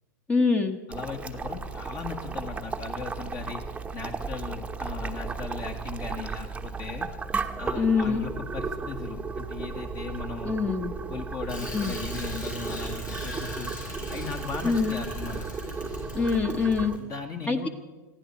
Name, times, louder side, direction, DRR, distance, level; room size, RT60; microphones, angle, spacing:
voice 1, 0.3-0.8 7.7-8.2 10.4-10.9 11.7-11.9 14.6-15.0 16.1-16.9 17.5-17.7, left 4 dB, 15° left, 6 dB, 1.2 m, -24 dB
voice 2, 0.9-3.6 3.9-7.1 7.6-10.7 11.1-13.7 14.1-15.5 17.0-17.7, left 4 dB, 35° left, 4 dB, 1.8 m, -37 dB
Boiling, 0.9-17.0, right 4 dB, 10° right, 1.0 m, -35 dB
Bicycle, 11.5-17.0, left 1 dB, 85° left, 5.9 m, -39 dB
21.0 x 15.0 x 4.4 m, 1.2 s
figure-of-eight pair, 90°, 10 cm